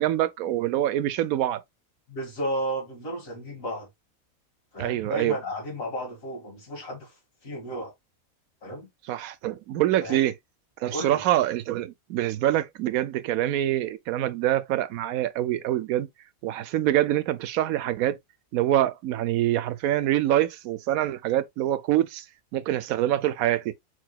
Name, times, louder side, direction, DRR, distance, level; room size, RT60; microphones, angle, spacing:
voice 1, 0.0-1.6 4.8-5.4 9.1-10.3 10.8-16.1 16.4-18.2 18.5-22.2 22.5-23.7, right 13 dB, 85° right, 1.0 m, -25 dB
voice 2, 2.1-3.9 4.7-7.1 7.4-7.9 8.6-8.9 10.0-10.2 10.9-11.2, equal, 70° left, 2.4 m, -33 dB
4.7 x 4.2 x 2.3 m
omnidirectional pair, 1.4 m